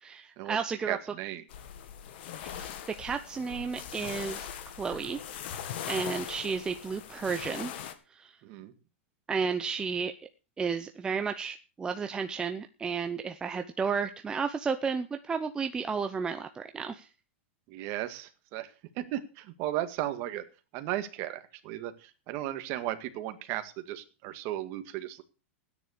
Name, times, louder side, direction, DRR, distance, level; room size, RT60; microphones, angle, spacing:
voice 1, 0.0-1.0 2.6-2.7 3.0-4.5 4.8-5.2 5.9-7.7 8.1-8.4 9.3-10.1 10.6-17.1, right 5 dB, 10° right, 7 dB, 0.7 m, -32 dB
voice 2, 0.9-1.4 8.4-8.7 17.7-20.4 20.7-25.2, right 14 dB, 40° right, 9 dB, 1.9 m, -35 dB
sound 1, 1.5-7.9, left 9 dB, 55° left, 2.1 m, -40 dB
14.0 x 9.8 x 6.5 m, 0.34 s
supercardioid pair, 155°, 7 cm